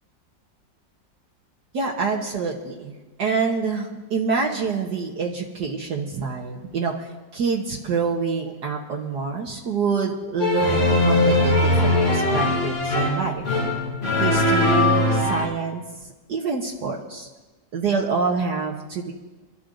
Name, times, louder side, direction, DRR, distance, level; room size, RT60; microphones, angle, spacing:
voice 1, 1.7-2.9 3.2-7.1 7.3-13.4 14.2-15.8 16.3-17.3 17.7-19.1, right 5 dB, 65° right, -1 dB, 1.7 m, -26 dB
sound 1, 10.4-15.5, left 2 dB, 80° left, 3.5 m, -20 dB
28.0 x 12.5 x 2.6 m, 1.2 s
omnidirectional pair, 2.0 m